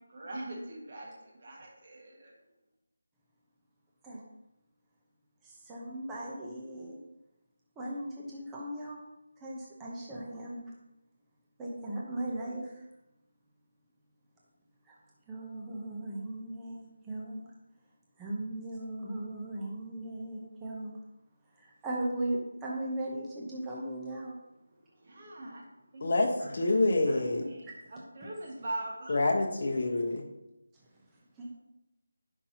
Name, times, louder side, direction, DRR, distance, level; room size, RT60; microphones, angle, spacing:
voice 1, 0.1-2.3 25.0-25.6 25.9-26.0 26.4-26.5 27.1-29.2, right 1 dB, 35° right, 1.7 m, -41 dB
voice 2, 5.4-7.0 7.8-9.0 9.4-10.6 11.6-12.9 14.8-15.0 15.3-17.5 18.2-21.0 21.5-24.4 30.8-30.9 31.4-31.5, right 1 dB, 5° right, 0.8 m, -38 dB
voice 3, 26.0-27.4 29.1-30.3, left 2 dB, 45° left, 1.2 m, -27 dB
9.5 x 5.9 x 2.9 m
figure-of-eight pair, 175°, 0 cm